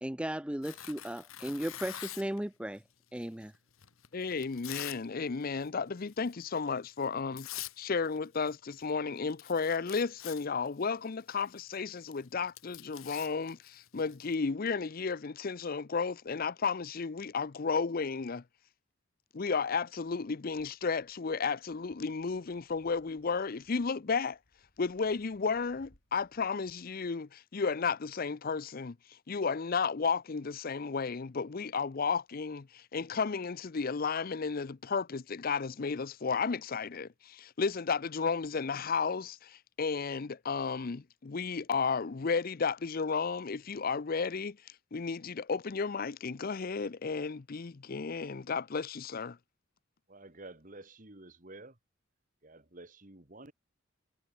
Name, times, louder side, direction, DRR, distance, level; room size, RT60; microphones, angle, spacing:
voice 1, 0.0-2.8 3.1-3.5, right 1 dB, 5° right, 0.5 m, -36 dB
Tearing, 0.6-2.4 3.2-5.0 5.3-5.7 6.1-6.3 7.0-7.1 7.4-7.8 8.1-8.6 8.8-8.9 9.2-14.3, left 13 dB, 90° left, 1.2 m, -45 dB
voice 2, 4.1-7.5 7.8-18.4 19.3-24.4 24.8-44.6 44.9-49.4, left 5 dB, 45° left, 0.6 m, -33 dB
sound 1, 19.9-26.5, equal, 65° left, 7.7 m, -70 dB
voice 3, 50.1-51.8 52.4-53.5, right 2 dB, 40° right, 2.5 m, -50 dB
head